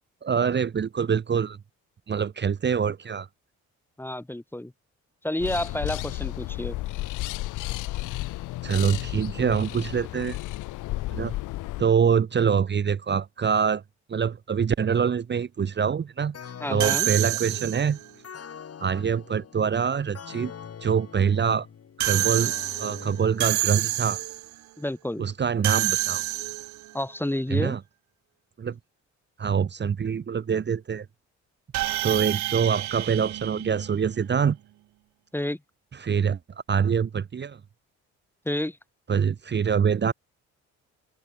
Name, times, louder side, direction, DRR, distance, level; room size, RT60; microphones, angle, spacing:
voice 1, 0.2-1.6 2.1-3.3 8.6-10.4 11.1-11.3 11.8-13.8 14.1-16.4 16.7-18.0 18.8-20.5 20.8-21.7 22.0-22.5 22.8-24.2 25.2-26.2 27.5-27.8 28.6-28.8 29.4-31.1 32.0-34.6 35.9-36.4 36.7-37.6 39.1-40.1, right 7 dB, 35° right, 1.0 m, -25 dB
voice 2, 4.0-4.7 5.2-6.8 16.6-17.1 24.8-25.2 26.9-27.8 35.3-35.6 38.5-38.8, left 1 dB, 5° left, 1.8 m, -29 dB
sound 1, 5.4-11.8, left 17 dB, 85° left, 0.8 m, -33 dB
sound 2, 16.3-24.0, left 8 dB, 50° left, 7.4 m, -44 dB
sound 3, 16.8-18.1 22.0-24.5 25.6-26.9 31.7-34.3, right 16 dB, 70° right, 0.5 m, -28 dB
open air
cardioid pair, 90°, 30 cm